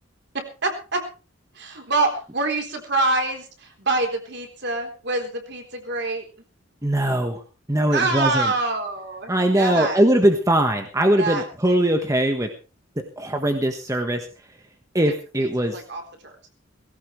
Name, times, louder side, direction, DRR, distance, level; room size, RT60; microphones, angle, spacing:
voice 1, 0.6-1.0 1.5-6.2 7.9-10.0 11.2-11.8 15.1-16.3, right 2 dB, 55° right, 4 dB, 3.8 m, -26 dB
voice 2, 6.8-7.4 7.7-8.5 9.3-12.5 13.2-14.3 14.9-15.8, right 1 dB, 15° right, 5 dB, 1.3 m, -21 dB
19.0 x 17.0 x 3.3 m, 0.34 s
head